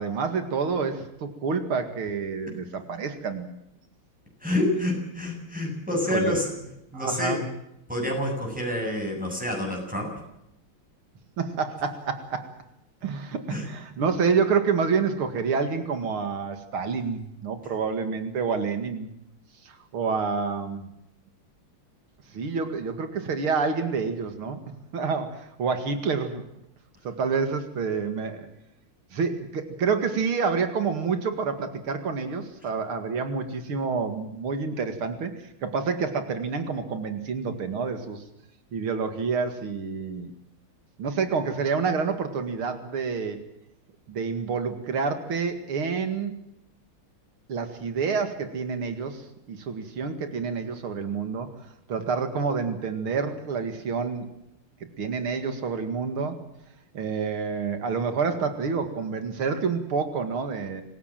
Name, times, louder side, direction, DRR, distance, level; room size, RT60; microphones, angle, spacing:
voice 1, 0.0-3.5 6.1-6.4 6.9-7.5 11.4-12.5 13.0-19.1 19.6-20.9 22.3-24.6 24.9-26.4 27.0-28.5 29.1-38.2 38.7-40.3 41.0-43.4 44.1-46.4 47.5-51.5 51.9-54.3 55.0-56.4 56.9-60.8, right 5 dB, 85° right, 8 dB, 2.9 m, -28 dB
voice 2, 4.4-6.5 6.9-7.4 7.9-10.1 13.5-13.7, left 1 dB, 5° right, 0 dB, 7.8 m, -27 dB
26.5 x 16.0 x 7.5 m, 0.82 s
omnidirectional pair, 2.3 m